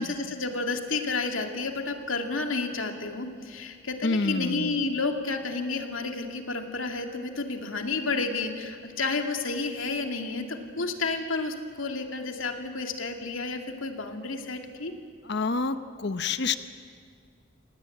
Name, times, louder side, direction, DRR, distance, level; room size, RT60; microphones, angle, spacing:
voice 1, 0.0-14.9, left 3 dB, 80° left, 4 dB, 2.4 m, -31 dB
voice 2, 4.0-4.8 15.2-16.6, left 3 dB, 55° left, 11 dB, 0.9 m, -28 dB
27.5 x 18.0 x 8.6 m, 2.2 s
head